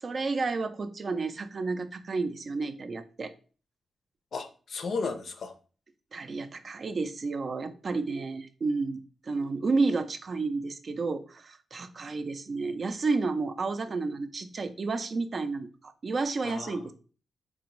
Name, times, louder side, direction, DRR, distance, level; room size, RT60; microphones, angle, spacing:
voice 1, 0.0-3.3 6.1-15.7 16.0-16.9, right 3 dB, 45° right, 9 dB, 0.3 m, -31 dB
voice 2, 4.3-5.5 16.4-16.9, left 4 dB, 65° left, 7 dB, 0.5 m, -34 dB
3.8 x 2.5 x 3.0 m, 0.38 s
wide cardioid pair, 120°, 0 cm